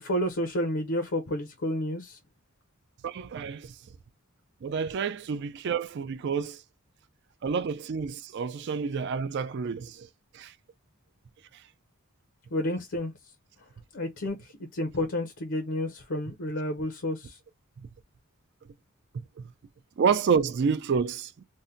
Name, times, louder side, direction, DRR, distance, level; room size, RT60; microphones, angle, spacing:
voice 1, 0.0-2.2 12.5-13.1 13.9-14.4 14.7-17.4, left 1 dB, 60° left, 0.6 m, -30 dB
voice 2, 3.0-3.8 4.6-6.6 7.4-10.1 10.3-10.5 11.5-11.6 17.8-17.9 19.1-19.5 20.0-21.4, right 6 dB, 50° right, 0.3 m, -29 dB
2.7 x 2.1 x 3.5 m
head